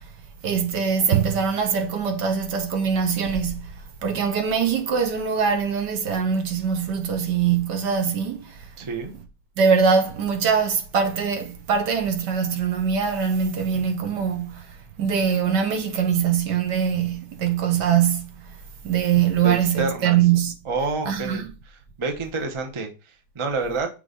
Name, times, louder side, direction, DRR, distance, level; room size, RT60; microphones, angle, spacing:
voice 1, 0.4-3.7 4.0-8.5 9.6-14.6 15.0-18.3 18.8-20.5 21.1-21.5, right 7 dB, 70° right, 1.5 m, -22 dB
voice 2, 8.8-9.1 13.7-13.8 19.4-20.2 20.6-21.4 22.0-23.9, right 3 dB, 35° right, 0.5 m, -28 dB
6.2 x 3.9 x 3.9 m
omnidirectional pair, 2.0 m